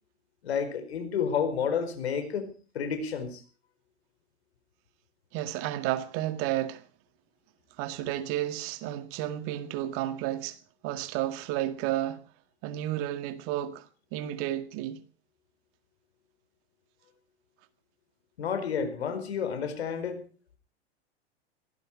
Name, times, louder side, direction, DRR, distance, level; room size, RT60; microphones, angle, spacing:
voice 1, 0.4-2.5 2.7-3.4 18.4-20.2, left 7 dB, 65° left, 4.7 m, -30 dB
voice 2, 5.3-6.8 7.8-10.6 10.8-12.2 12.6-15.0, right 13 dB, 40° right, 1.9 m, -32 dB
19.0 x 16.0 x 4.6 m
figure-of-eight pair, 100°, 34 cm